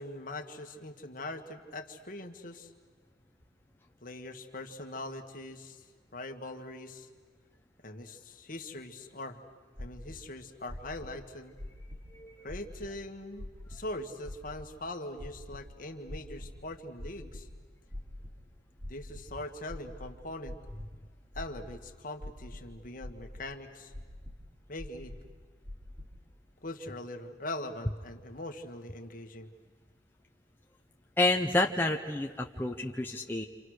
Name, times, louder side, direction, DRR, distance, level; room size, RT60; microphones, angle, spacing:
voice 1, 0.0-2.7 4.0-7.1 7.8-9.4 9.8-11.5 12.4-17.5 18.9-20.6 21.3-23.9 24.7-25.1 26.6-29.5, left 1 dB, 50° left, 5 dB, 1.7 m, -42 dB
sound 1, 9.8-10.2 10.7-11.1 11.6-12.1 12.5-12.9 13.4-13.8 14.3-14.7 15.2-15.6 16.1-16.6 17.0-17.4 17.9-18.4 18.8-19.2 19.7-20.9 21.3-21.8 22.2-22.7 23.0-23.5 23.9-24.4 24.8-25.3 25.6-26.1, left 1 dB, 45° right, 4.4 m, -43 dB
voice 2, 12.1-12.5 31.2-33.4, left 2 dB, 10° left, 2 dB, 0.8 m, -29 dB
29.0 x 26.5 x 6.5 m, 1.5 s
head